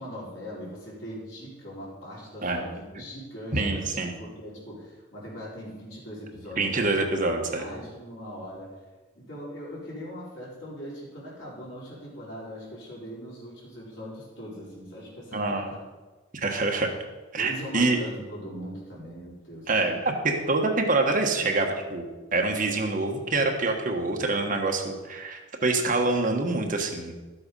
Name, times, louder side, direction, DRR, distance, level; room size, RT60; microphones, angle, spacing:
voice 1, 0.0-8.8 9.1-15.8 17.4-20.0, equal, 65° left, -5 dB, 4.7 m, -40 dB
voice 2, 3.5-4.1 6.6-7.7 15.3-15.7 16.3-16.9 17.3-18.0 19.7-27.1, right 3 dB, 40° right, 2 dB, 1.4 m, -26 dB
12.5 x 7.8 x 5.5 m, 1.2 s
head